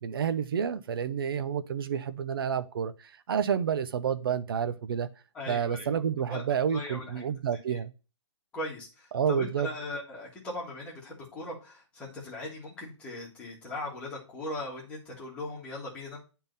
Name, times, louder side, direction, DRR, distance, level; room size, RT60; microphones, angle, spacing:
voice 1, 0.0-5.1 5.5-7.9 9.1-9.7, right 7 dB, 50° right, 0.6 m, -29 dB
voice 2, 5.3-6.0 6.3-6.4 6.7-7.2 7.7-7.8 8.5-16.2, left 2 dB, 5° left, 1.6 m, -39 dB
8.8 x 3.7 x 4.0 m
hypercardioid pair, 175°, 15 cm